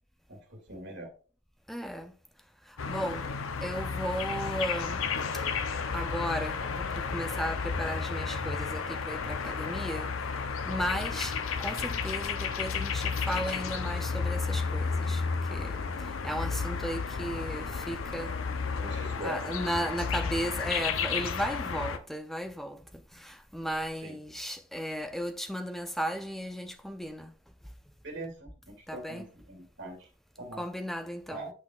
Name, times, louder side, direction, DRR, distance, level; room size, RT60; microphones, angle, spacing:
voice 1, 0.3-1.1 18.8-19.4 24.0-24.2 28.0-30.1 30.4-30.6 31.3-31.5, right 1 dB, 60° right, 2.2 m, -42 dB
voice 2, 1.7-2.1 2.9-3.3 3.6-5.0 5.9-10.1 10.7-15.2 15.5-15.9 16.2-18.3 19.2-22.8 23.2-27.3 28.9-29.3 30.6-31.5, equal, ahead, 0.4 m, -35 dB
sound 1, 2.8-22.0, left 5 dB, 85° left, 0.6 m, -32 dB
8.3 x 5.9 x 2.4 m
head